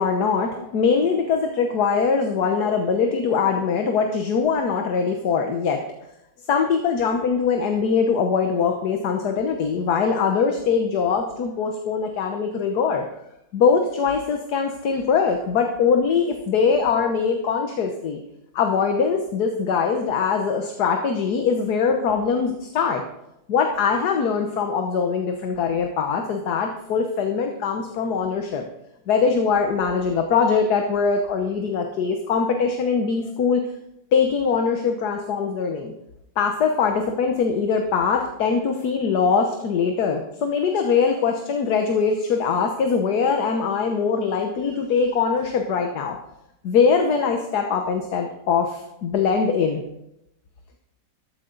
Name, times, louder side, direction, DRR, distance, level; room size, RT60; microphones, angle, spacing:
voice 1, 0.0-5.8 6.5-13.1 13.5-18.2 18.5-23.0 23.5-28.6 29.1-33.6 34.1-35.9 36.4-46.2 46.6-49.8, left 5 dB, 65° left, 4 dB, 1.5 m, -22 dB
14.0 x 12.5 x 3.9 m, 0.83 s
omnidirectional pair, 2.0 m